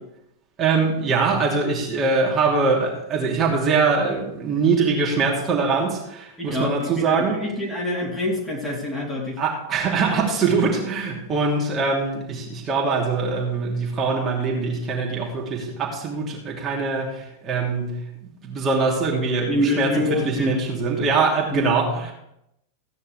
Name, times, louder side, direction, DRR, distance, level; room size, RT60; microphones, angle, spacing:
voice 1, 0.6-7.4 9.4-18.0 18.4-22.1, right 4 dB, 25° right, -3 dB, 2.8 m, -23 dB
voice 2, 6.4-9.4 19.5-20.6 21.5-21.7, left 1 dB, 5° left, -3 dB, 3.3 m, -26 dB
16.0 x 9.5 x 3.4 m, 0.82 s
figure-of-eight pair, 90°, 0 cm